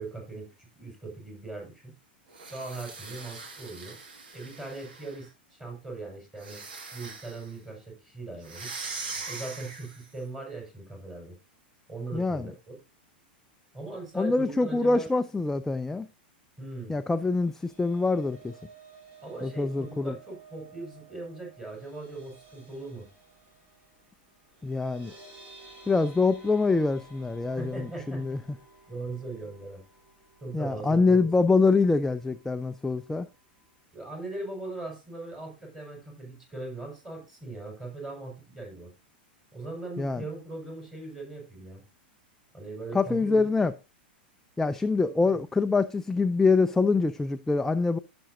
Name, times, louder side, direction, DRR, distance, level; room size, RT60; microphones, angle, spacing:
voice 1, 0.0-1.9 2.5-4.0 4.3-6.6 6.9-8.7 9.3-11.3 11.9-12.8 13.7-15.1 16.6-17.0 19.2-23.1 27.6-28.4 28.9-29.8 30.4-31.5 33.9-38.9 39.5-41.8 42.5-43.5 45.0-45.3, right 3 dB, 10° right, 4.9 m, -40 dB
sound 1, 2.3-5.3 6.4-7.5 8.4-10.1, right 4 dB, 70° right, 2.0 m, -41 dB
voice 2, 12.1-12.5 14.2-16.1 16.9-18.5 19.4-20.1 24.6-25.1 25.9-28.4 30.5-33.3 40.0-40.2 42.9-43.7 44.6-48.0, left 3 dB, 5° left, 0.5 m, -25 dB
sound 2, 17.3-31.5 31.8-32.1 32.4-32.5, right 3 dB, 35° right, 3.6 m, -54 dB
15.5 x 6.1 x 2.7 m
figure-of-eight pair, 95°, 5 cm